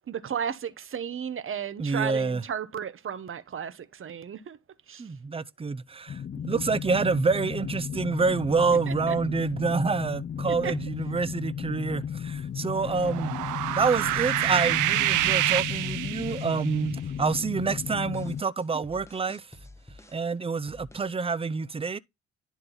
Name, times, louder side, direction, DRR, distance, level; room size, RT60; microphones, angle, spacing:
voice 1, 0.1-4.6 4.9-5.1 8.9-9.1 10.6-10.7, right 8 dB, 45° right, 1.1 m, -34 dB
voice 2, 1.8-2.4 5.0-13.4 13.7-19.6 20.1-22.0, right 4 dB, 20° right, 0.6 m, -27 dB
sound 1, 6.1-18.4, left 8 dB, 35° left, 0.6 m, -35 dB
sound 2, 12.9-16.7, right 16 dB, 85° right, 0.6 m, -27 dB
sound 3, 14.0-16.6 17.0-17.5 17.8-20.3 20.7-21.2, left 1 dB, 10° left, 1.5 m, -50 dB
11.0 x 3.8 x 3.8 m
cardioid pair, 90°, 30 cm